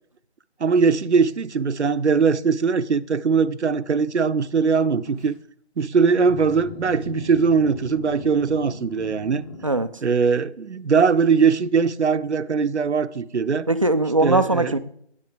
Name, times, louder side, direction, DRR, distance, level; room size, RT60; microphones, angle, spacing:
voice 1, 0.6-5.3 5.8-9.4 10.0-13.7 14.2-14.7, right 5 dB, 80° right, 0.8 m, -20 dB
sound 1, 4.4-5.3 6.2-9.7, left 2 dB, 25° left, 2.5 m, -39 dB
voice 2, 13.7-14.8, right 2 dB, 30° right, 0.5 m, -20 dB
9.7 x 8.8 x 5.0 m
figure-of-eight pair, 155°, 33 cm